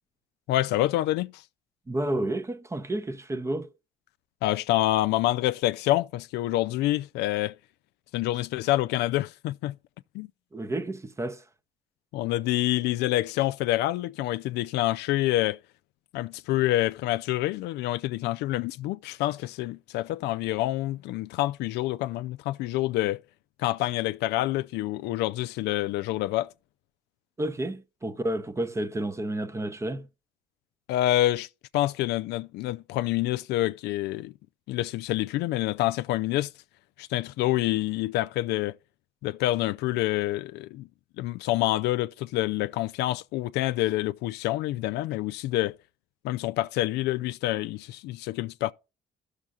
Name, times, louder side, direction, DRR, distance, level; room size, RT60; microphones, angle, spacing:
voice 1, 0.5-1.4 4.4-7.5 8.1-9.8 10.1-10.3 12.1-15.6 16.1-23.2 23.6-26.5 30.9-31.5 31.7-34.3 34.7-36.5 37.0-38.8 39.2-40.9 41.2-45.8 46.2-48.7, left 15 dB, 80° left, 0.4 m, -27 dB
voice 2, 1.9-3.7 10.5-11.4 27.4-30.1, right 1 dB, 15° right, 0.6 m, -31 dB
16.5 x 6.5 x 2.3 m
cardioid pair, 110°, 17 cm